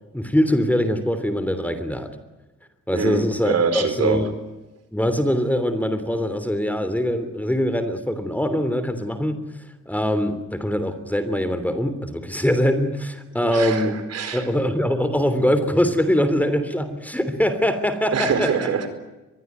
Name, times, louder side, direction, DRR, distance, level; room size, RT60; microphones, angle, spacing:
voice 1, 0.1-2.1 2.9-4.3 4.9-9.4 9.9-14.0 14.3-18.7, equal, 5° left, 11 dB, 3.2 m, -23 dB
voice 2, 2.9-4.2 13.4-14.5 18.1-18.9, right 6 dB, 55° right, 10 dB, 4.8 m, -24 dB
24.0 x 21.5 x 9.5 m, 1.1 s
cardioid pair, 90°, 30 cm